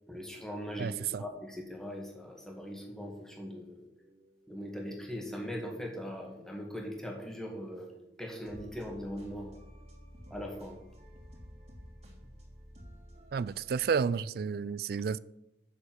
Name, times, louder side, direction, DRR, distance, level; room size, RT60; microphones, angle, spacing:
voice 1, 0.1-3.8 4.5-7.9 8.2-9.6 10.3-10.8, equal, 5° left, 1.9 m, -40 dB
voice 2, 0.8-1.2 13.3-15.2, right 6 dB, 55° right, 0.3 m, -31 dB
sound 1, 2.6-13.9, equal, 35° right, 2.9 m, -54 dB
7.5 x 6.5 x 7.8 m
head